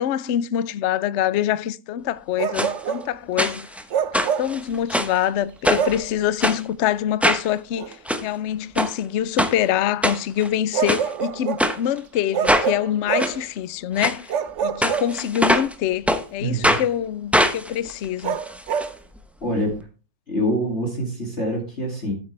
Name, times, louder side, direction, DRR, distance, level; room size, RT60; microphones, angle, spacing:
voice 1, 0.0-3.7 4.1-14.3 14.6-18.4, left 10 dB, 85° left, 0.6 m, -25 dB
Bark, 2.4-3.1 3.9-4.6 5.7-6.1 7.8-7.9 10.7-11.7 12.3-13.4 14.3-15.6 18.2-19.0, right 8 dB, 60° right, 0.8 m, -26 dB
sound 1, 2.5-2.7 3.4-3.8 4.1-5.2 5.6-6.0 6.4-6.6 7.2-7.5 7.9-8.2 8.8-8.9 9.4-9.5 10.0-10.5 10.9-11.0 11.6-11.8 12.4-12.7 13.2-13.3 14.0-14.2 14.8-15.7 16.1-16.2 16.6-16.9 17.3-18.9 19.2-19.3 19.5-19.6, equal, ahead, 0.5 m, -22 dB
voice 2, 16.4-16.8 19.4-19.8 20.3-22.1, equal, 40° left, 2.8 m, -25 dB
12.5 x 8.6 x 3.3 m
omnidirectional pair, 1.9 m